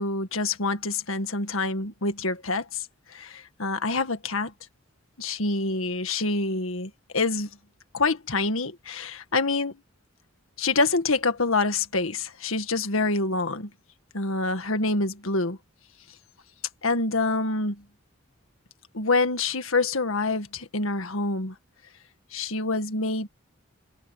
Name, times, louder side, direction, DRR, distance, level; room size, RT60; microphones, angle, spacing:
voice 1, 0.0-4.5 5.2-7.5 7.9-9.8 10.6-13.7 14.1-15.6 16.8-17.8 18.9-21.5 22.3-23.3, left 3 dB, 80° left, 1.8 m, -26 dB
head